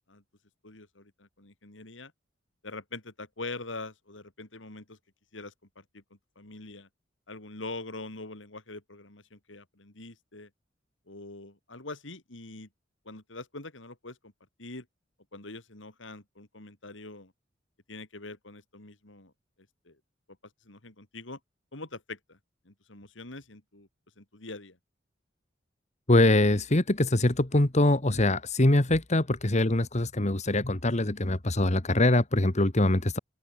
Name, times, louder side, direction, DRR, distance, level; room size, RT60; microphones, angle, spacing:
voice 1, 0.6-2.1 2.6-5.0 5.3-6.9 7.3-10.5 11.1-12.7 13.0-14.3 14.6-14.9 15.3-17.3 17.9-19.3 19.8-20.0 20.6-21.4 21.7-22.4 22.6-23.9 24.2-24.8, left 2 dB, 85° left, 3.3 m, -43 dB
voice 2, 26.1-33.2, left 1 dB, 40° left, 1.7 m, -23 dB
open air
head